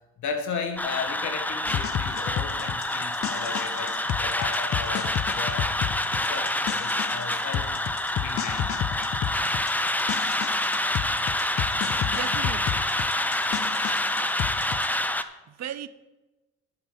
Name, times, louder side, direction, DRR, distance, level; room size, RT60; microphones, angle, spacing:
voice 1, 0.2-5.7 6.2-7.7 8.2-8.8, left 5 dB, 70° left, 1.9 m, -35 dB
sound 1, 0.8-15.2, left 1 dB, 5° left, 0.7 m, -27 dB
sound 2, 1.7-14.9, left 11 dB, 50° left, 0.5 m, -32 dB
voice 2, 12.0-12.9 15.2-15.9, right 10 dB, 60° right, 0.7 m, -37 dB
10.5 x 9.3 x 5.2 m
cardioid pair, 90°, 30 cm